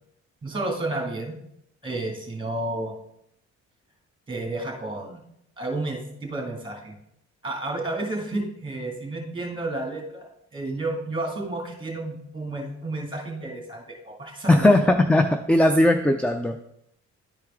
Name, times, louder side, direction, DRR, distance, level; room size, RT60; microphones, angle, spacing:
voice 1, 0.4-1.3 1.8-2.9 4.3-5.2 5.6-6.9 7.4-14.9, right 2 dB, 15° right, 1 dB, 2.2 m, -31 dB
voice 2, 14.5-16.7, left 1 dB, 5° left, 8 dB, 0.4 m, -19 dB
11.0 x 4.6 x 3.6 m, 0.76 s
cardioid pair, 90°, 30 cm